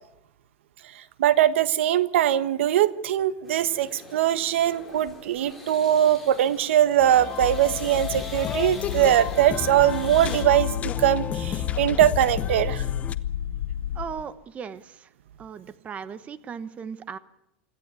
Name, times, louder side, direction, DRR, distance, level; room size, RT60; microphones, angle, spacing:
voice 1, 0.9-12.9, right 11 dB, 85° right, 14 dB, 1.4 m, -22 dB
sound 1, 3.4-10.4, left 2 dB, ahead, 5.4 m, -44 dB
sound 2, 7.0-13.2, left 8 dB, 20° left, 0.8 m, -33 dB
sound 3, 7.4-14.1, left 10 dB, 90° left, 1.3 m, -31 dB
voice 2, 13.9-15.1 15.4-17.2, right 6 dB, 20° right, 15 dB, 1.1 m, -37 dB
26.0 x 15.0 x 8.3 m, 0.84 s
supercardioid pair, 155°, 6 cm